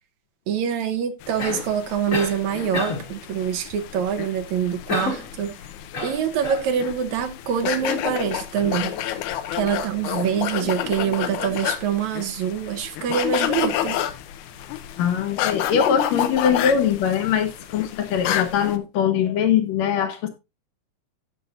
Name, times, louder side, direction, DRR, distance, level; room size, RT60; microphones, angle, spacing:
voice 1, 0.5-5.5 6.0-8.9 9.6-14.0, right 8 dB, 75° right, 2.1 m, -25 dB
sound 1, 1.2-18.8, left 11 dB, 90° left, 2.2 m, -30 dB
Cough, 1.4-1.7 2.1-2.4 2.7-3.1 4.9-5.3 5.9-6.7, left 4 dB, 40° left, 1.3 m, -28 dB
voice 2, 15.0-20.3, left 8 dB, 70° left, 2.0 m, -22 dB
16.0 x 5.4 x 2.5 m
omnidirectional pair, 3.5 m